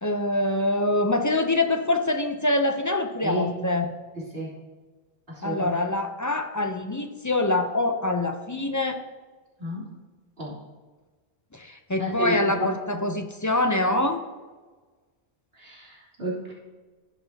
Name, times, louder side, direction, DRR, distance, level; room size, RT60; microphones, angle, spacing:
voice 1, 0.0-3.9 5.4-9.0 11.5-14.2, left 2 dB, 20° left, 5 dB, 0.5 m, -25 dB
voice 2, 4.2-4.5 5.3-5.8 9.6-9.8 10.4-10.5 12.0-12.7 15.6-16.5, equal, 65° right, -7 dB, 3.5 m, -31 dB
15.5 x 6.0 x 2.8 m, 1.3 s
omnidirectional pair, 1.1 m